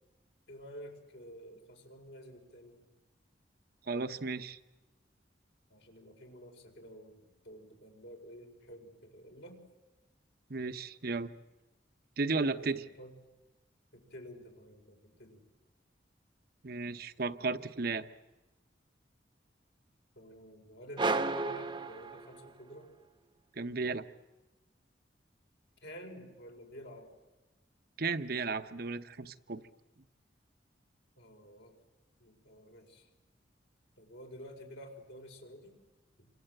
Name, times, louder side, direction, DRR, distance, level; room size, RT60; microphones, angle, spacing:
voice 1, 0.5-2.9 5.7-9.6 12.6-13.1 13.9-15.4 20.1-22.9 25.8-27.1 31.2-31.8 32.2-33.1 34.0-35.8 36.2-36.3, equal, 70° left, 2 dB, 5.0 m, -50 dB
voice 2, 3.9-4.6 10.5-11.3 12.2-12.8 16.6-18.1 23.6-24.0 28.0-29.6, right 3 dB, 55° right, 10 dB, 1.0 m, -34 dB
sound 1, 21.0-22.7, right 3 dB, 25° right, 1.0 m, -33 dB
27.5 x 25.5 x 8.0 m, 1.1 s
head